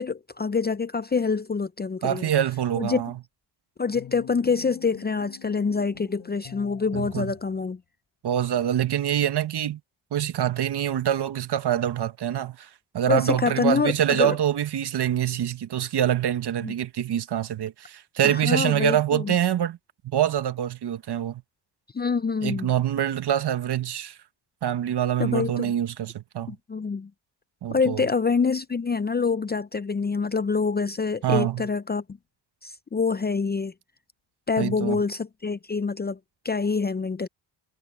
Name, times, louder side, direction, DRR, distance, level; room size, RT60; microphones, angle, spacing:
voice 1, 0.0-2.3 2.8-3.0 3.8-7.8 13.1-14.4 16.6-16.7 18.2-19.3 21.9-22.7 25.2-25.7 26.5-27.1 27.7-32.0 32.6-33.7 34.5-36.2 36.4-37.3, left 5 dB, 20° left, 0.6 m, -26 dB
voice 2, 2.0-3.1 6.9-7.3 8.2-9.8 10.1-12.7 12.9-19.8 20.0-21.4 22.4-24.2 24.6-26.5 27.6-28.0 31.2-31.7 34.6-35.0, right 10 dB, 50° right, 1.4 m, -25 dB
sound 1, 3.9-7.6, left 10 dB, 65° left, 4.8 m, -45 dB
cardioid pair, 85°, 49 cm